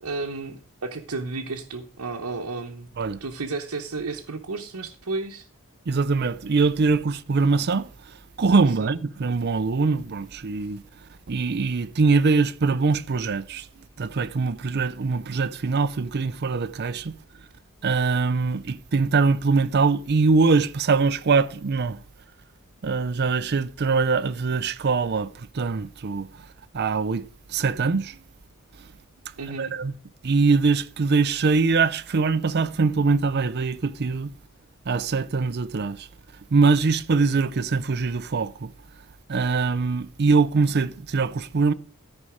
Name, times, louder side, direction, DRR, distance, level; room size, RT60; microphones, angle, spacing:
voice 1, 0.0-2.9 3.2-5.5 8.8-8.9 29.4-29.7, right 3 dB, 85° right, 0.9 m, -32 dB
voice 2, 5.9-7.9 8.4-10.8 11.3-13.7 14.0-17.1 17.8-22.0 22.8-26.3 26.7-28.2 29.6-29.9 30.2-34.3 34.9-36.1 36.5-38.7 39.3-41.7, right 4 dB, 50° right, 0.5 m, -23 dB
13.0 x 5.4 x 4.9 m
head